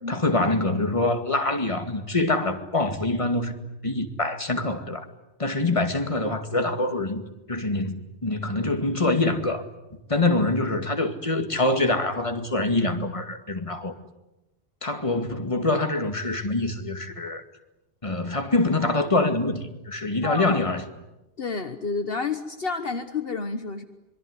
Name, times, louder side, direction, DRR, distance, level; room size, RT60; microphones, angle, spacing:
voice 1, 0.1-3.5 3.8-5.1 5.4-9.7 10.1-13.9 14.8-17.4 18.0-20.8, left 2 dB, 30° left, 2.3 m, -25 dB
voice 2, 20.2-20.6 21.4-23.8, left 4 dB, 60° left, 1.5 m, -30 dB
25.5 x 23.0 x 9.8 m
omnidirectional pair, 1.1 m